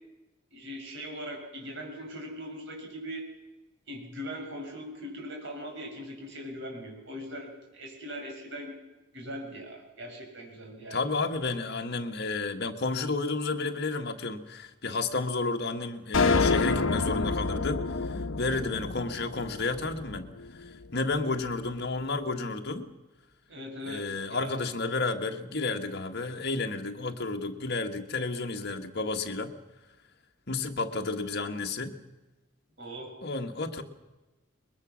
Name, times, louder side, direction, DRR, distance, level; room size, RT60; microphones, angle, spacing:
voice 1, 0.5-3.3 3.9-8.7 9.1-11.0 23.5-24.6 32.8-33.1, equal, 65° right, 1 dB, 6.8 m, -40 dB
voice 2, 10.9-20.3 20.9-22.9 23.9-29.5 30.5-32.0 33.2-33.8, left 3 dB, 55° left, 5 dB, 1.6 m, -31 dB
sound 1, 16.1-20.6, left 3 dB, 80° left, 1.0 m, -28 dB
22.0 x 21.5 x 6.3 m, 1.1 s
head